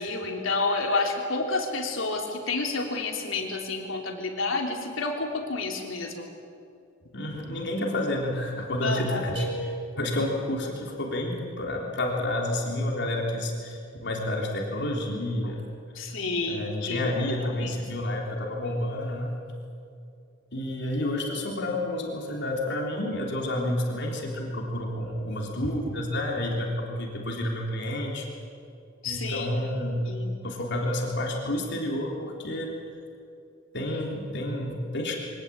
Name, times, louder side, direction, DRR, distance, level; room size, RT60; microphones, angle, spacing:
voice 1, 0.0-6.3 8.8-9.3 15.9-17.1 17.4-17.8 29.0-29.6 30.1-30.3, left 3 dB, 80° left, 2 dB, 3.3 m, -30 dB
voice 2, 7.1-15.7 16.5-19.3 20.5-28.3 29.1-30.1 30.4-32.7 33.7-35.2, left 1 dB, 60° left, -1 dB, 3.7 m, -30 dB
sound 1, 9.3-10.5, right 2 dB, 30° right, 4.6 m, -37 dB
23.5 x 18.5 x 8.7 m, 2.5 s
head